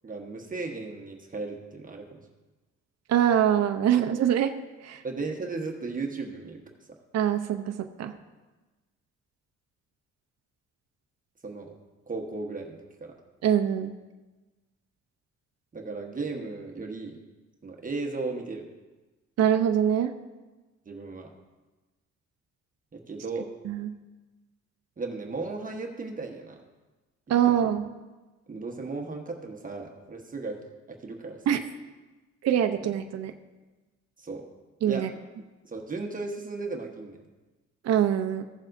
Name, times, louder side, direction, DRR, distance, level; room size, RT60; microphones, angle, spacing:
voice 1, 0.0-2.2 5.0-6.6 6.9-7.0 11.4-11.7 12.1-13.1 15.7-17.2 17.6-18.7 20.8-21.3 22.9-23.5 25.0-26.6 27.4-27.6 28.5-30.6 30.9-31.6 34.2-34.5 34.9-35.1 35.6-37.2, right 3 dB, 25° right, 1 dB, 1.2 m, -35 dB
voice 2, 3.1-4.5 4.8-5.0 7.1-8.1 13.4-13.9 19.4-20.1 23.7-23.9 27.3-27.9 31.5-31.6 32.4-33.3 34.8-35.1 37.8-38.4, right 9 dB, 60° right, 7 dB, 0.7 m, -24 dB
15.5 x 7.3 x 2.6 m, 1.2 s
cardioid pair, 90°, 30 cm